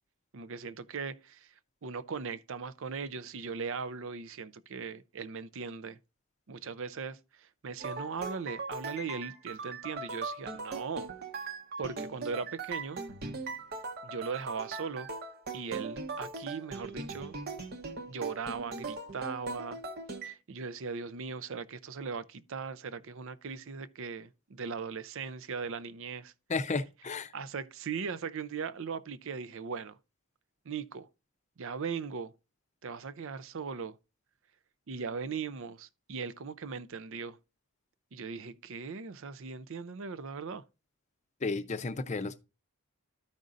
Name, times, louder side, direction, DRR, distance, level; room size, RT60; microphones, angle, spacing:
voice 1, 0.3-1.5 1.8-6.0 6.5-11.1 11.8-13.0 14.0-15.1 15.5-17.4 18.1-19.8 20.2-26.3 27.3-30.0 30.7-31.1 31.6-32.3 32.8-34.0 34.9-37.4 38.1-40.6, right 5 dB, 60° right, 0.5 m, -39 dB
sound 1, 7.8-20.3, right 3 dB, 45° right, 0.9 m, -40 dB
voice 2, 26.5-27.3 41.4-42.4, left 3 dB, 30° left, 0.6 m, -33 dB
13.5 x 5.3 x 2.5 m
head